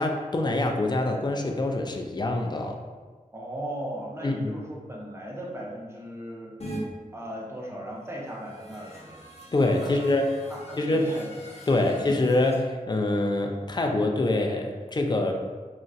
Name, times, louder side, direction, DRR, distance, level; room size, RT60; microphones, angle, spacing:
voice 1, 0.0-2.8 4.2-4.5 9.5-10.3 10.8-11.2 11.7-15.3, left 2 dB, 30° left, 3 dB, 0.4 m, -25 dB
voice 2, 3.3-6.6 7.1-9.2 9.6-10.0 10.5-11.3 11.8-12.1, equal, 20° right, -3 dB, 0.7 m, -37 dB
sound 1, 6.6-6.8 8.2-12.6, equal, 50° left, 0.8 m, -43 dB
3.8 x 2.1 x 2.5 m, 1.4 s
cardioid pair, 45°, 14 cm